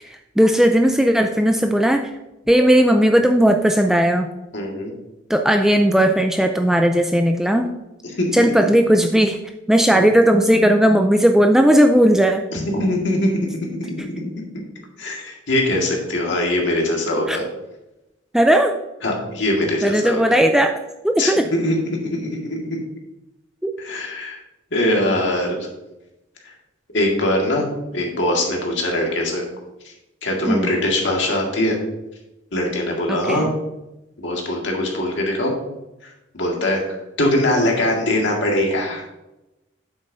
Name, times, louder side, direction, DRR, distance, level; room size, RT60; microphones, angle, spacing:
voice 1, 0.4-2.1 2.5-4.3 5.3-7.7 8.3-9.4 9.7-12.4 17.3-17.4 18.3-18.7 19.8-20.7 21.0-21.5 23.6-23.7 30.5-30.7 33.1-33.5, equal, ahead, 5 dB, 0.3 m, -16 dB
voice 2, 4.5-4.9 8.2-8.7 9.9-10.1 12.5-14.3 15.0-17.4 19.0-20.3 21.2-21.8 22.0-22.8 23.8-24.4 24.7-25.6 26.4-26.5 26.9-27.6 27.9-29.4 29.8-29.9 30.2-31.8 32.5-33.5 34.2-35.5 36.0-36.8 37.2-39.0, left 1 dB, 65° left, 0 dB, 1.8 m, -22 dB
8.9 x 7.2 x 2.7 m, 0.95 s
head